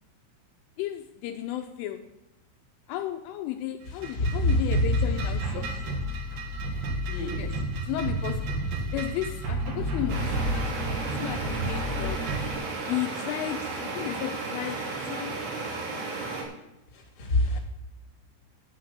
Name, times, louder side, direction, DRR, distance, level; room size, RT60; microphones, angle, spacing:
voice 1, 0.8-2.0 2.9-6.0 7.4-7.5 7.8-8.5 8.9-10.7 11.2-12.2 12.9-14.8 15.1-15.4 15.9-16.3 17.5-17.6, left 13 dB, 80° left, 5 dB, 3.2 m, -34 dB
sound 1, 3.8-12.5, right 1 dB, 55° right, 3.1 m, -31 dB
voice 2, 3.9-4.9 7.1-7.5 16.9-17.6, left 2 dB, 30° left, 1 dB, 2.6 m, -26 dB
sound 2, 10.1-16.4, right 3 dB, 90° right, 6.1 m, -34 dB
10.5 x 8.8 x 6.9 m, 0.97 s
omnidirectional pair, 5.7 m